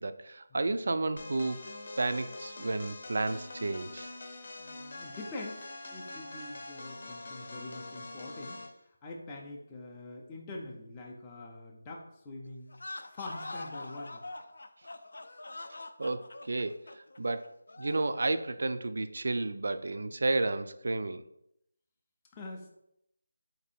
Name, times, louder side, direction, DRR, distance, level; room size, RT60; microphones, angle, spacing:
voice 1, 0.0-1.6 2.0-4.1 16.0-21.2, right 2 dB, 60° right, 0.3 m, -32 dB
sound 1, 1.2-8.8, left 2 dB, 50° left, 0.7 m, -44 dB
voice 2, 4.6-5.6 5.9-12.7 13.1-14.2 22.3-22.7, left 2 dB, 15° left, 0.4 m, -44 dB
sound 2, 12.7-18.1, left 2 dB, 75° left, 0.4 m, -44 dB
4.4 x 2.7 x 4.1 m
figure-of-eight pair, 170°, 0 cm